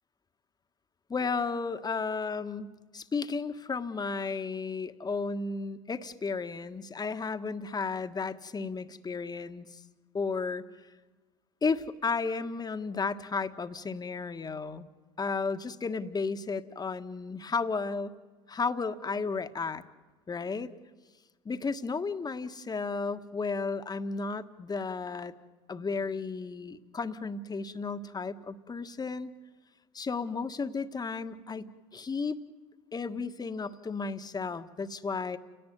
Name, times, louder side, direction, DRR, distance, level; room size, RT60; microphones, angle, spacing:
voice 1, 1.1-2.7 2.9-9.8 10.1-10.6 11.6-14.9 15.2-18.1 18.5-19.8 20.3-20.7 21.4-25.3 25.7-29.3 29.9-32.4 32.9-35.4, left 4 dB, 25° left, 9 dB, 1.6 m, -33 dB
30.0 x 18.0 x 9.4 m, 1.3 s
hypercardioid pair, 70°, 15 cm